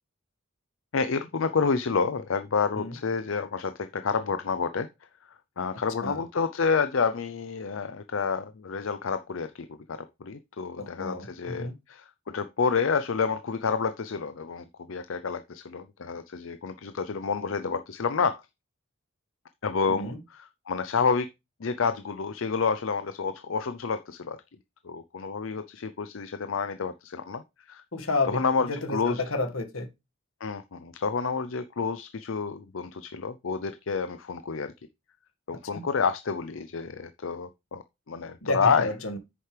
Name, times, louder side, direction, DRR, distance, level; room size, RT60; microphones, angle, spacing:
voice 1, 0.9-4.9 5.6-18.4 19.6-20.1 20.7-21.3 21.6-24.4 24.8-27.4 27.7-27.8 28.3-29.2 30.4-34.7 35.5-38.9, left 5 dB, 65° left, 0.6 m, -29 dB
voice 2, 10.8-11.8 19.9-20.2 27.9-29.9 35.7-35.9 38.4-39.2, left 2 dB, 85° left, 1.8 m, -31 dB
9.1 x 6.6 x 3.3 m
head